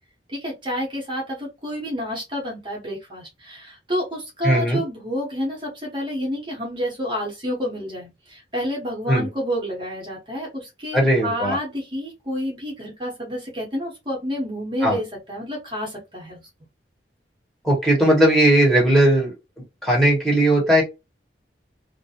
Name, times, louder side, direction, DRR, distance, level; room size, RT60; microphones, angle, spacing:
voice 1, 0.3-16.4, equal, 25° right, -2 dB, 0.7 m, -29 dB
voice 2, 4.4-4.8 9.1-9.3 10.9-11.6 14.8-15.0 17.6-19.3 19.8-20.8, right 1 dB, 5° left, -3 dB, 0.9 m, -17 dB
2.3 x 2.0 x 2.6 m, 0.24 s
head